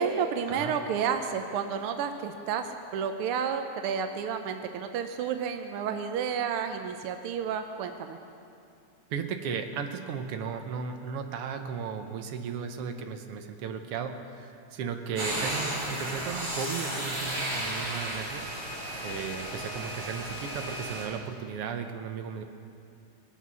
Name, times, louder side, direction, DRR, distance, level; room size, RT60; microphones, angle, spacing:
voice 1, 0.0-2.7 2.9-8.2, right 7 dB, 85° right, 7 dB, 1.2 m, -31 dB
voice 2, 9.1-18.5 19.0-22.4, right 6 dB, 70° right, 6 dB, 1.5 m, -35 dB
sound 1, 15.2-21.0, right 1 dB, 35° right, 4.2 m, -34 dB
21.0 x 8.3 x 6.1 m, 2.5 s
omnidirectional pair, 3.4 m